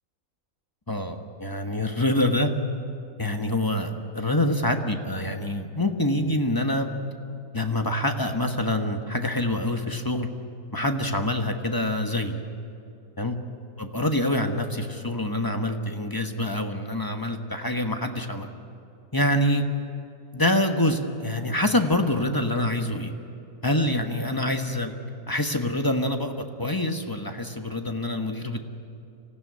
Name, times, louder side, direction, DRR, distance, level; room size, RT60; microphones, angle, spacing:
voice 1, 0.9-2.5 3.2-6.9 7.5-10.3 10.7-12.4 13.2-13.4 13.8-18.5 19.1-19.6 20.3-23.1 23.6-24.9 25.3-28.6, left 1 dB, 15° left, 5 dB, 1.2 m, -26 dB
25.5 x 17.0 x 9.6 m, 2.6 s
omnidirectional pair, 1.6 m